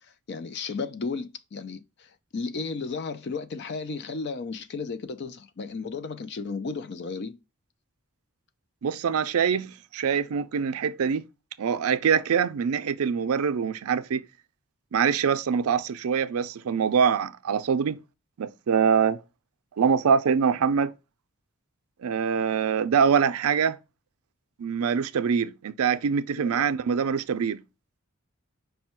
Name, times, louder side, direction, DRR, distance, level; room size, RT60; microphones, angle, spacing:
voice 1, 0.3-1.8 2.3-7.4 26.3-26.8, left 4 dB, 50° left, 0.4 m, -34 dB
voice 2, 8.8-11.2 11.6-14.2 14.9-18.0 18.4-19.2 19.8-20.9 22.0-23.8 24.6-27.6, right 6 dB, 75° right, 0.4 m, -24 dB
5.4 x 2.2 x 4.3 m
head